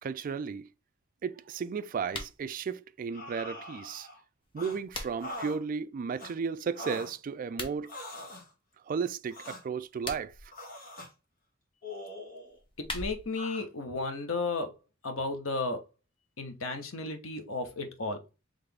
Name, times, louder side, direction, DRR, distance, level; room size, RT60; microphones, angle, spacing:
voice 1, 0.0-0.7 1.2-4.1 4.5-7.9 8.9-10.5, right 6 dB, 40° right, 0.3 m, -34 dB
sound 1, 2.0-2.4 4.4-5.4 7.4-7.8 9.8-10.5 12.5-13.4, left 2 dB, 25° left, 0.9 m, -41 dB
sound 2, 3.1-4.2 4.6-4.8 5.2-5.6 6.2-6.3 6.8-7.1 7.8-8.5 9.3-9.6 10.5-11.1 11.8-12.6 13.4-13.7, left 1 dB, 45° left, 1.4 m, -42 dB
voice 2, 12.8-14.7 15.0-15.8 16.4-18.2, left 3 dB, 85° left, 1.0 m, -34 dB
3.9 x 3.2 x 3.4 m
head